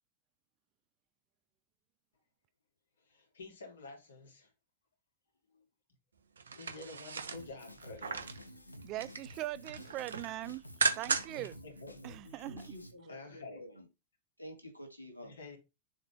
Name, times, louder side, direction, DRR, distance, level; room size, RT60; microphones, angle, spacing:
voice 1, 3.1-4.5 5.5-5.6 6.5-8.6 11.3-12.4 13.1-13.6 15.2-15.6, left 3 dB, 70° left, 2.6 m, -50 dB
sound 1, 6.4-8.4 8.8-9.3 9.6-11.5 11.8-11.9, right 5 dB, 70° right, 0.9 m, -36 dB
Drum kit, 7.3-12.9, equal, 85° left, 0.8 m, -52 dB
voice 2, 8.8-10.6 11.0-11.5 12.0-12.7, right 16 dB, 40° right, 0.3 m, -41 dB
voice 3, 12.5-13.9 14.4-15.4, equal, 90° right, 2.0 m, -49 dB
7.1 x 4.0 x 3.3 m
figure-of-eight pair, 90°, 0 cm